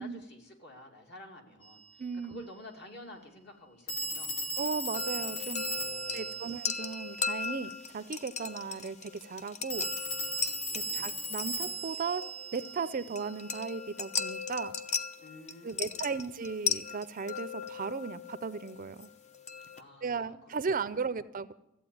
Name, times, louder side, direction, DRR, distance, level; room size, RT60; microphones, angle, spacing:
voice 1, 0.0-1.8 2.2-4.3 5.6-6.5 10.7-11.1 15.2-16.1 19.7-20.3 20.8-20.9, left 1 dB, 55° left, 2 dB, 2.5 m, -51 dB
Telephone, 1.6-1.8 3.9-7.6 9.7-13.4, equal, 75° left, 2.2 m, -37 dB
voice 2, 2.0-2.5 4.6-5.7 6.1-9.9 10.7-12.2 12.5-14.7 15.6-19.1 20.0-21.5, right 5 dB, 40° right, 15 dB, 0.5 m, -36 dB
sound 1, 4.9-19.8, left 6 dB, 35° left, 0.7 m, -38 dB
14.5 x 8.4 x 8.5 m, 0.89 s
head